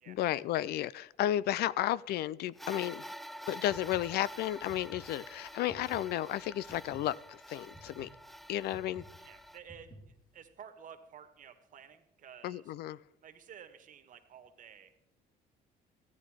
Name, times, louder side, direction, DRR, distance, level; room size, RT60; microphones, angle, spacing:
voice 1, 0.1-3.0 3.5-8.1 8.5-9.0 12.4-13.0, left 13 dB, 70° left, 21 dB, 0.4 m, -33 dB
sound 1, 2.6-9.6, equal, ahead, 0.4 m, -48 dB
sound 2, 3.6-10.4, equal, 25° left, 3.1 m, -54 dB
voice 2, 9.2-9.9 10.3-12.7 13.2-14.9, right 8 dB, 50° right, 8 dB, 1.5 m, -52 dB
15.0 x 9.4 x 4.9 m, 0.87 s
cardioid pair, 110°, 17 cm